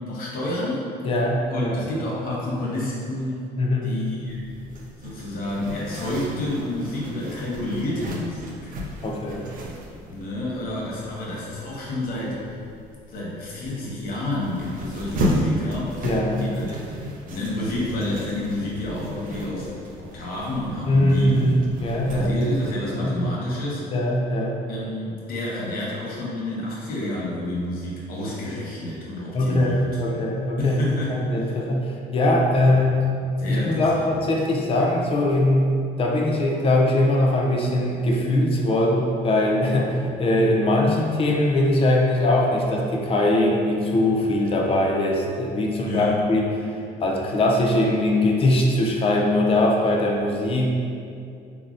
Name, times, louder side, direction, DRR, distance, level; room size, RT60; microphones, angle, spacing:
voice 1, 0.0-0.9 1.5-3.4 3.8-4.5 5.0-8.8 10.1-12.4 13.1-16.1 16.4-16.8 17.3-19.7 20.0-21.6 22.1-23.9 24.7-29.8 30.6-31.5 32.6-32.8 33.4-34.1 45.8-46.1, left 1 dB, 60° left, -5 dB, 0.9 m, -29 dB
voice 2, 1.0-1.8 3.6-3.9 9.0-9.5 16.0-16.5 20.9-22.6 22.9-23.4 23.9-24.6 29.3-30.8 31.1-33.0 33.5-35.7 36.0-50.7, left 1 dB, 35° left, -1 dB, 0.4 m, -21 dB
Zipper (clothing), 4.3-22.8, equal, 55° right, 0.5 m, -34 dB
3.8 x 2.0 x 2.5 m, 2.4 s
cardioid pair, 110°, 17 cm